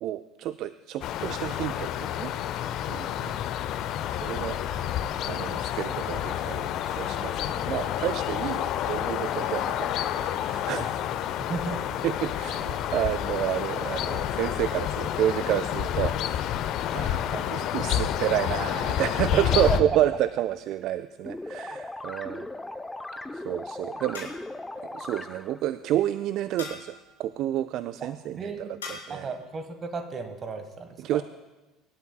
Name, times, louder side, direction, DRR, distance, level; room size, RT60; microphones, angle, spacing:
voice 1, 0.0-2.3 2.9-3.1 4.1-4.6 5.3-10.8 12.0-16.5 16.9-22.5 23.3-24.3 24.8-28.7 29.1-29.3 31.0-31.2, right 12 dB, 50° right, 14 dB, 0.3 m, -30 dB
sound 1, 1.0-19.8, left 11 dB, 50° left, 0.6 m, -29 dB
voice 2, 11.4-11.8 17.3-17.5 19.5-20.0 28.0-28.7 29.1-31.2, right 4 dB, 30° right, 8 dB, 1.4 m, -34 dB
sound 2, 21.2-25.7, left 2 dB, 10° left, 0.6 m, -38 dB
sound 3, 21.9-22.5 24.1-24.7 26.6-27.1 28.8-29.3, left 4 dB, 75° left, 2.2 m, -42 dB
24.5 x 11.5 x 2.3 m, 1.1 s
figure-of-eight pair, 65°, 0 cm